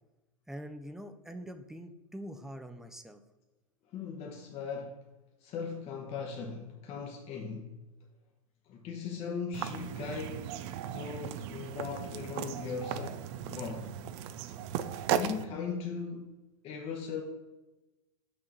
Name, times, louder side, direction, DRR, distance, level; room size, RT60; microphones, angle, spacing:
voice 1, 0.5-3.2, equal, ahead, 0.6 m, -44 dB
voice 2, 3.9-5.0 5.4-7.8 8.7-10.5 10.9-13.9 15.1-16.3 16.6-17.2, left 5 dB, 35° left, 0.9 m, -38 dB
sound 1, 9.5-15.4, right 10 dB, 50° right, 0.5 m, -36 dB
6.2 x 3.7 x 6.0 m
hypercardioid pair, 95°, 18 cm